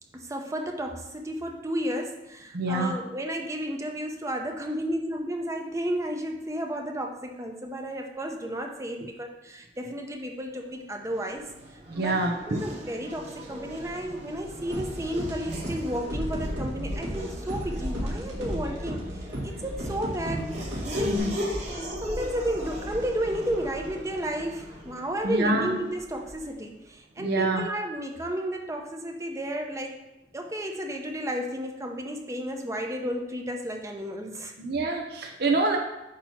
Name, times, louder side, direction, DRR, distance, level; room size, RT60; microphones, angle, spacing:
voice 1, 0.1-11.5 11.9-12.2 12.5-20.7 21.0-21.2 22.0-30.0 30.3-34.5, equal, 15° right, 2 dB, 0.7 m, -32 dB
voice 2, 2.5-2.9 11.9-12.6 21.0-21.3 25.2-25.7 27.2-27.6 34.6-35.8, right 2 dB, 60° right, 2 dB, 0.7 m, -26 dB
Race car auto racing / Accelerating revving vroom, 11.0-26.6, equal, 40° right, 1.4 m, -37 dB
sound 1, 14.7-21.2, equal, 75° right, 2.1 m, -36 dB
8.6 x 2.9 x 5.7 m, 0.95 s
head